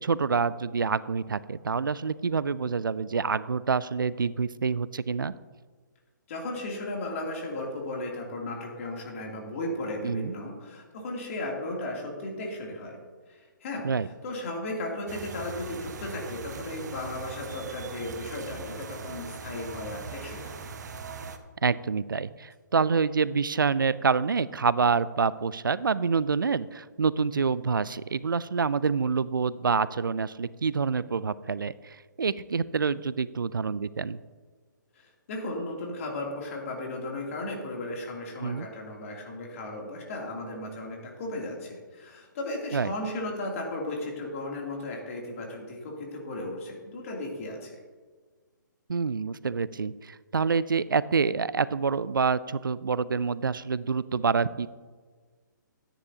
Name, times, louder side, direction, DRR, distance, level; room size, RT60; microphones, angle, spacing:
voice 1, 0.0-5.3 10.0-10.3 13.8-14.1 21.6-34.2 38.4-38.7 42.7-42.9 48.9-54.7, right 5 dB, 85° right, 18 dB, 0.4 m, -27 dB
voice 2, 6.3-13.0 13.3-20.6 34.9-47.8, left 2 dB, 45° left, -1 dB, 2.7 m, -35 dB
sound 1, 15.1-21.4, right 4 dB, 55° right, 0.9 m, -40 dB
13.0 x 10.0 x 2.8 m, 1.4 s
figure-of-eight pair, 135°, 11 cm